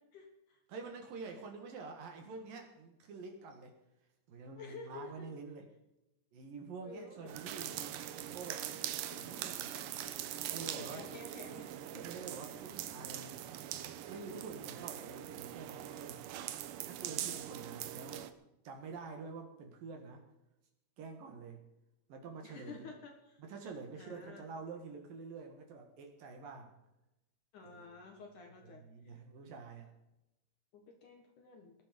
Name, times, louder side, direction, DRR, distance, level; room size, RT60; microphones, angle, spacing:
voice 1, 0.0-0.6 4.5-5.3 6.8-7.3 9.1-9.3 10.4-12.1 22.4-23.4 24.0-24.4 27.5-28.8 30.7-31.7, left 4 dB, 60° left, 3 dB, 2.4 m, -51 dB
voice 2, 0.7-3.8 4.3-5.7 6.3-8.7 9.1-9.7 10.5-11.1 11.9-13.4 13.8-16.2 16.9-18.3 18.6-20.2 21.0-21.6 22.1-22.9 23.4-26.7 27.6-28.2 28.6-29.9, right 4 dB, 60° right, 4 dB, 3.1 m, -48 dB
sound 1, 7.3-18.3, right 11 dB, 85° right, 1.9 m, -42 dB
19.0 x 11.5 x 5.2 m, 0.91 s
omnidirectional pair, 5.1 m